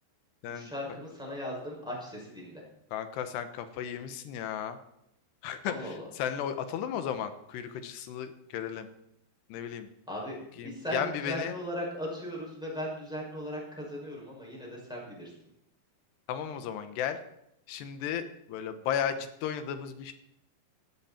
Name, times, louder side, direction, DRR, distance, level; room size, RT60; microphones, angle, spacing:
voice 1, 0.4-2.6 5.6-6.1 10.1-15.3, equal, ahead, -4 dB, 6.1 m, -38 dB
voice 2, 2.9-4.8 5.4-8.9 9.5-9.9 10.6-11.6 16.3-17.2 17.7-20.1, left 9 dB, 85° left, 9 dB, 3.2 m, -34 dB
17.0 x 13.0 x 4.4 m, 0.79 s
omnidirectional pair, 4.7 m